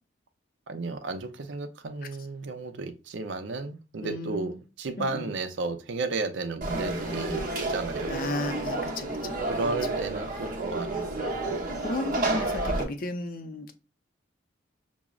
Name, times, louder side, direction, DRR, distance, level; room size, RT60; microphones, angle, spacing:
voice 1, 0.7-8.2 9.5-11.6 12.3-12.5, right 3 dB, 65° right, 0.5 m, -33 dB
voice 2, 4.0-4.5 5.0-5.3 8.1-9.7 11.6-13.7, left 2 dB, 45° left, 0.5 m, -34 dB
Conversation / Crowd, 6.6-12.8, right 2 dB, 45° right, 0.8 m, -30 dB
5.9 x 2.0 x 2.3 m
head